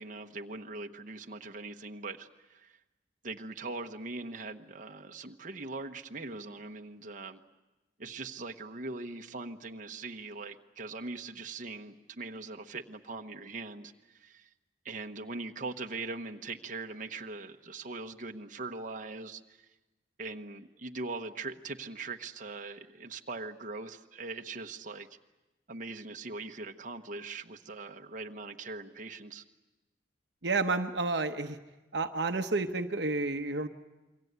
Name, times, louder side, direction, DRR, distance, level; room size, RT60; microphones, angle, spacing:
voice 1, 0.0-2.8 3.2-7.4 8.0-14.5 14.8-19.7 20.2-25.1 25.7-29.4, right 3 dB, 45° right, 4 dB, 1.1 m, -41 dB
voice 2, 30.4-31.6 31.9-33.7, right 3 dB, 65° right, 7 dB, 1.0 m, -30 dB
28.0 x 23.5 x 8.1 m, 1.1 s
head